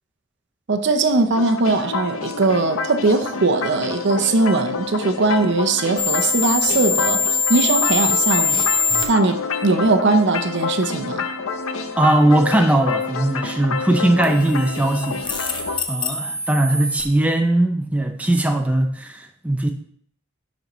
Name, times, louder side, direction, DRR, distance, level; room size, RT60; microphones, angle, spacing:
voice 1, 0.7-7.2 7.5-8.6 9.1-11.3, right 3 dB, 60° right, 0.7 m, -20 dB
sound 1, 1.3-15.8, left 4 dB, 90° left, 0.7 m, -28 dB
sound 2, 6.0-9.0 14.2-17.1, left 4 dB, 25° left, 0.8 m, -23 dB
voice 2, 12.0-15.5 15.9-19.7, right 1 dB, 5° right, 0.5 m, -19 dB
11.0 x 5.2 x 3.1 m
head